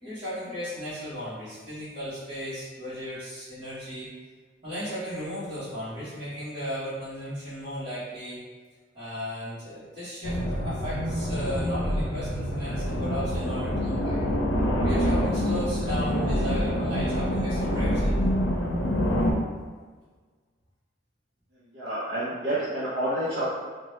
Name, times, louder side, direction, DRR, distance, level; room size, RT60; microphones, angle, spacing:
voice 1, 0.0-4.1 4.6-8.4 8.9-14.2 14.8-18.1, equal, 25° right, -16 dB, 1.2 m, -35 dB
sound 1, 10.2-19.3, equal, 75° left, 0.5 m, -26 dB
voice 2, 21.5-23.5, right 1 dB, 65° right, -9 dB, 0.7 m, -29 dB
3.9 x 2.2 x 3.1 m, 1.5 s
head